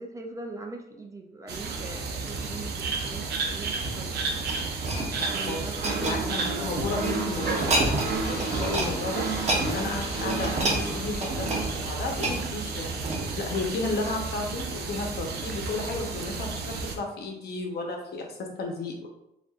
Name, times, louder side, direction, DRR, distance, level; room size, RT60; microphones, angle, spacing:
voice 1, 0.0-3.3 3.5-4.2 5.3-6.3, right 3 dB, 20° right, 3 dB, 0.4 m, -40 dB
sound 1, 1.5-17.0, right 4 dB, 80° right, 0.7 m, -32 dB
sound 2, 3.8-7.0 7.4-8.1 8.4-8.9 9.2-13.5 14.1-14.2, right 2 dB, 40° right, 0.9 m, -30 dB
voice 2, 5.1-9.3 9.6-19.1, left 3 dB, 70° left, 2 dB, 0.9 m, -33 dB
Purr, 7.1-11.9, left 1 dB, 30° left, 1.6 m, -38 dB
7.3 x 2.5 x 2.4 m, 0.83 s
cardioid pair, 150°, 17 cm